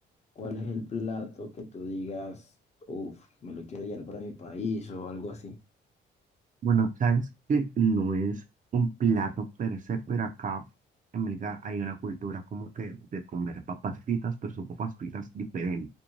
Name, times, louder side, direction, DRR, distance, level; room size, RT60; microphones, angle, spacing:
voice 1, 0.4-2.5 2.9-5.6, left 3 dB, 35° left, 0.7 m, -36 dB
voice 2, 6.6-8.4 8.7-10.6 11.1-15.9, right 5 dB, 40° right, 0.6 m, -29 dB
2.6 x 2.2 x 3.0 m
cardioid pair, 90°, 20 cm